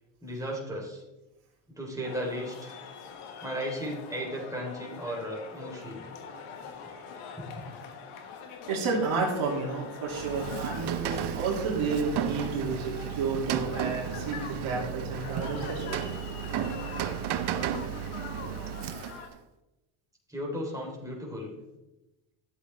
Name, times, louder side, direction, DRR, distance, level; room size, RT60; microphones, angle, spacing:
voice 1, 0.2-1.0 1.7-2.8 3.4-6.0 7.4-7.7 20.3-21.5, equal, 5° right, -3 dB, 3.4 m, -35 dB
sound 1, 2.0-19.3, left 6 dB, 80° left, 1.5 m, -44 dB
voice 2, 8.7-16.0, right 4 dB, 70° right, -1 dB, 2.8 m, -31 dB
Rain, 10.1-19.4, right 10 dB, 55° right, 0.8 m, -34 dB
12.0 x 7.7 x 3.4 m, 1.0 s
supercardioid pair, 85°, 49 cm